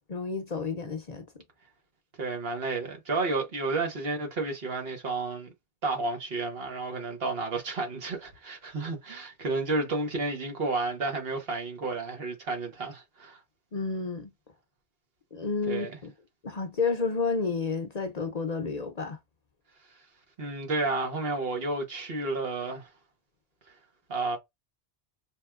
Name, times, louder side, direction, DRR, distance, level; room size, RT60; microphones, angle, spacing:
voice 1, 0.1-1.3 13.7-14.3 15.3-16.1 16.4-19.2, left 4 dB, 45° left, 0.7 m, -30 dB
voice 2, 2.2-5.5 5.8-13.4 15.7-15.9 20.4-22.9 24.1-24.4, right 3 dB, 65° right, 1.5 m, -31 dB
5.2 x 3.3 x 2.4 m
omnidirectional pair, 1.1 m